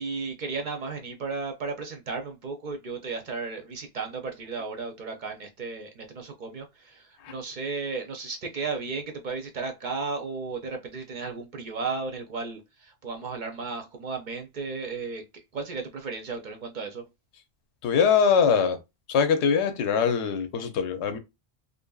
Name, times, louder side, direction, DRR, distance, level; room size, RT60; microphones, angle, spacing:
voice 1, 0.0-15.2 15.5-17.0, right 4 dB, 55° right, 0.6 m, -34 dB
voice 2, 17.8-18.8 19.1-21.2, left 6 dB, 85° left, 0.9 m, -22 dB
2.6 x 2.6 x 2.2 m
omnidirectional pair, 1.1 m